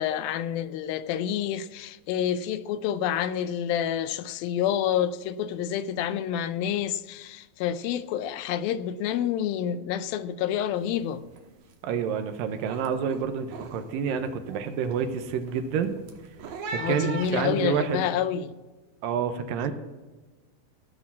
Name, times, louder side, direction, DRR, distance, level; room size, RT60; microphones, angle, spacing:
voice 1, 0.0-11.2 16.8-18.5, left 9 dB, 80° left, 2.4 m, -28 dB
sound 1, 10.8-11.0 11.3-11.7 12.1-18.1, right 4 dB, 60° right, 2.0 m, -41 dB
voice 2, 11.8-16.0 16.7-18.0 19.0-19.7, right 7 dB, 80° right, 2.4 m, -28 dB
15.5 x 6.3 x 7.2 m
omnidirectional pair, 4.2 m